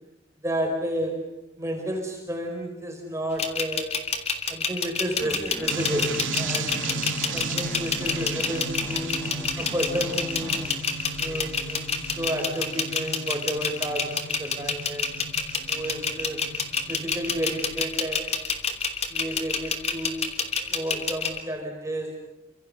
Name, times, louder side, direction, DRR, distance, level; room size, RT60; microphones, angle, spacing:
voice 1, 0.4-4.0 4.5-6.8 7.3-9.3 9.6-10.7 11.1-15.1 15.7-16.5 16.9-18.4 19.1-20.3 20.7-22.3, right 1 dB, 15° right, 2 dB, 4.8 m, -31 dB
sound 1, 3.4-21.4, left 5 dB, 35° left, 3.1 m, -28 dB
sound 2, 5.2-10.8, equal, 15° left, 2.2 m, -40 dB
sound 3, 5.7-17.8, right 3 dB, 85° right, 2.3 m, -35 dB
29.5 x 27.0 x 6.7 m, 0.87 s
head